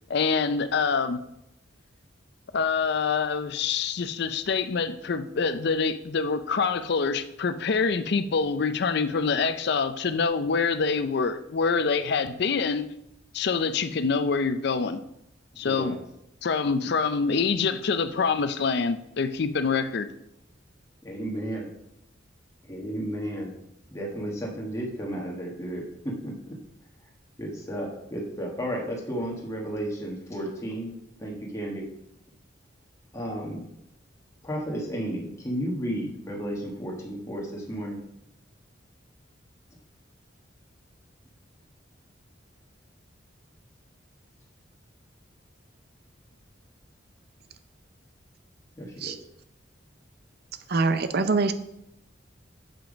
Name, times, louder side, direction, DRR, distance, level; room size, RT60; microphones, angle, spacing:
voice 1, 0.1-1.2 2.5-12.9 13.3-15.0 15.6-16.0 16.4-20.1, left 5 dB, 60° left, 11 dB, 0.5 m, -26 dB
voice 2, 15.6-16.0 21.0-21.7 22.6-23.6 23.9-26.6 27.0-27.1 27.4-31.9 33.1-33.7 34.4-38.0 48.8-49.2, equal, 15° left, -2 dB, 1.4 m, -33 dB
voice 3, 50.7-51.5, right 3 dB, 55° right, 10 dB, 0.6 m, -23 dB
6.9 x 5.8 x 5.1 m, 0.81 s
head